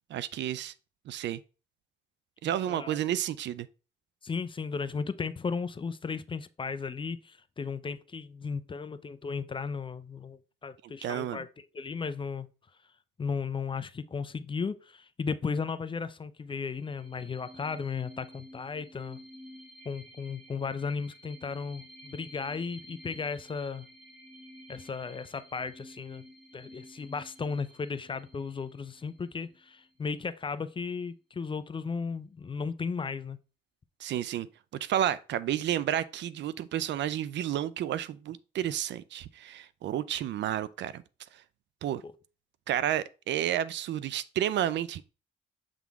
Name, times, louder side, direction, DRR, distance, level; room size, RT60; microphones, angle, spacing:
voice 1, 0.1-0.7 1.1-1.4 2.4-3.7 11.0-11.4 34.0-34.5 34.8-41.0 41.8-42.0 42.7-45.0, right 11 dB, 65° right, 0.4 m, -31 dB
voice 2, 2.7-3.0 4.2-12.5 13.2-19.2 19.8-23.9 24.7-26.2 26.5-33.4 42.0-42.1, left 5 dB, 25° left, 0.5 m, -35 dB
sound 1, 16.6-29.9, equal, ahead, 1.6 m, -52 dB
7.3 x 3.7 x 3.5 m
cardioid pair, 90°, 20 cm